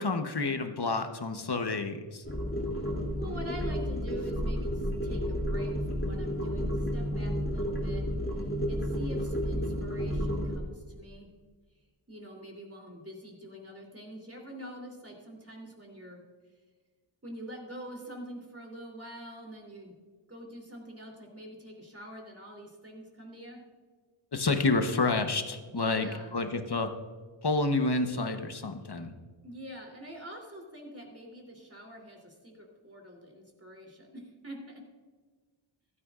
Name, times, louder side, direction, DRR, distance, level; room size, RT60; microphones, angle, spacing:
voice 1, 0.0-2.2 24.3-26.9 27.4-29.1, left 3 dB, 50° left, 7 dB, 1.1 m, -29 dB
sound 1, 2.2-10.6, equal, 25° left, 2.8 m, -31 dB
voice 2, 3.2-8.0 8.3-11.3 12.1-16.2 17.2-19.9 20.3-23.6 25.7-26.3 29.4-34.8, equal, 30° right, 0 dB, 3.2 m, -45 dB
15.0 x 12.5 x 2.5 m, 1.5 s
wide cardioid pair, 45°, 49 cm